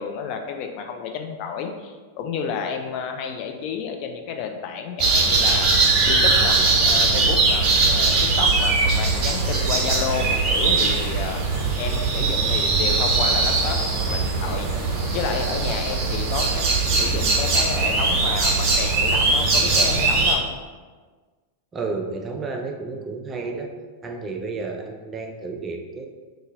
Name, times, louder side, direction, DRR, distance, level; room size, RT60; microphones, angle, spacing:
voice 1, 0.0-5.7 6.0-11.4 11.8-13.8 14.1-14.7 15.1-20.4, left 6 dB, 50° left, 4 dB, 0.4 m, -30 dB
sound 1, 5.0-20.3, right 3 dB, 45° right, 1.0 m, -20 dB
voice 2, 21.7-23.7 24.0-26.1, right 3 dB, 25° right, 3 dB, 0.5 m, -31 dB
2.8 x 2.7 x 3.8 m, 1.4 s
hypercardioid pair, 95°, 0 cm